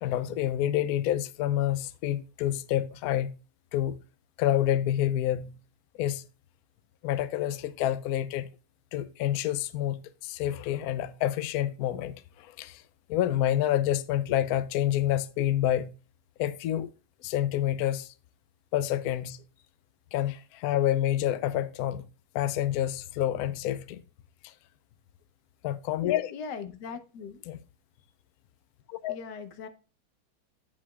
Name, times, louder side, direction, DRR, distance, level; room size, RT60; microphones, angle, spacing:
voice 1, 0.0-3.3 3.7-4.0 4.4-5.5 5.9-6.2 7.0-8.5 8.9-10.0 10.2-12.8 13.1-15.9 16.4-16.9 17.2-18.1 18.7-19.4 20.1-22.0 22.3-24.0 24.4-24.5 25.6-26.3 27.4-27.6 28.9-29.2, left 12 dB, 85° left, 0.8 m, -28 dB
voice 2, 26.3-27.4 29.1-29.7, left 5 dB, 60° left, 1.4 m, -40 dB
8.4 x 7.5 x 2.3 m
omnidirectional pair, 2.2 m